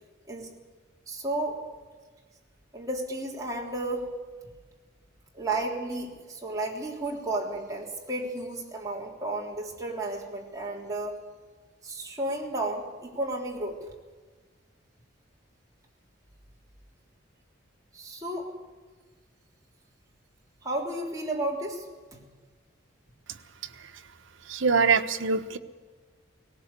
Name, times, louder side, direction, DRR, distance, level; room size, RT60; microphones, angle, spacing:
voice 1, 1.1-1.6 2.7-4.1 5.3-11.2 11.8-13.9 17.9-18.5 20.6-21.9 22.1-22.2, right 2 dB, 15° right, -2 dB, 3.4 m, -32 dB
voice 2, 24.5-25.6, right 5 dB, 75° right, 9 dB, 1.2 m, -24 dB
18.5 x 18.5 x 8.3 m, 1.4 s
head